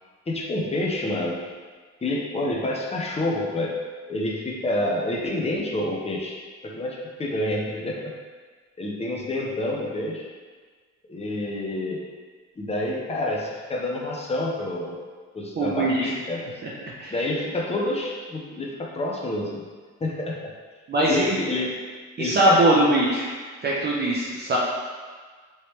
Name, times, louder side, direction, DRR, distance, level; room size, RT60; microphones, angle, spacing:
voice 1, 0.3-1.4 2.0-3.8 4.1-8.1 8.8-10.3 11.1-12.1 12.6-15.0 15.3-16.5 17.1-19.7 20.0-20.5 21.1-21.7 22.2-22.7, left 1 dB, 20° left, -2 dB, 0.6 m, -28 dB
voice 2, 15.6-16.1 16.6-16.7 17.0-17.1 20.9-21.4 22.2-23.3 23.6-24.6, right 1 dB, 35° right, -5 dB, 0.6 m, -21 dB
3.0 x 3.0 x 3.0 m, 1.5 s
cardioid pair, 90°, 30 cm